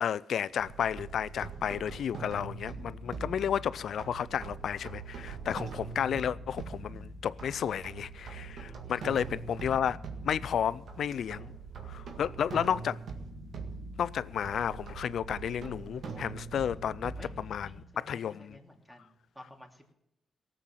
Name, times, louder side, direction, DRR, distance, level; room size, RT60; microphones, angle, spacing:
voice 1, 0.0-10.0 10.2-11.5 11.8-13.0 14.0-18.6, left 8 dB, 75° left, 0.4 m, -32 dB
sound 1, 0.6-17.8, right 4 dB, 70° right, 1.8 m, -43 dB
voice 2, 8.8-9.8 17.2-19.9, left 1 dB, ahead, 2.8 m, -54 dB
17.5 x 7.7 x 7.4 m
supercardioid pair, 55°, 0 cm